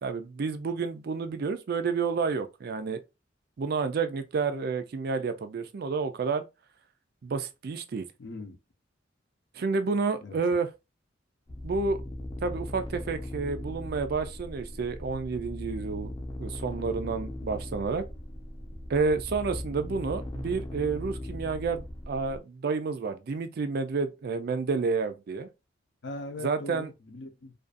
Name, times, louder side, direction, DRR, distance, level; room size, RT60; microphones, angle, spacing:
voice 1, 0.0-3.0 3.6-6.4 7.2-8.1 9.5-10.7 11.6-12.0 12.4-16.1 16.4-18.0 18.9-25.5 26.4-26.9, right 4 dB, 55° right, 0.4 m, -30 dB
voice 2, 8.2-8.6 10.2-10.4 26.0-27.5, left 2 dB, 65° left, 0.6 m, -40 dB
sound 1, 11.5-22.4, left 1 dB, 25° left, 0.5 m, -39 dB
2.5 x 2.3 x 2.5 m
head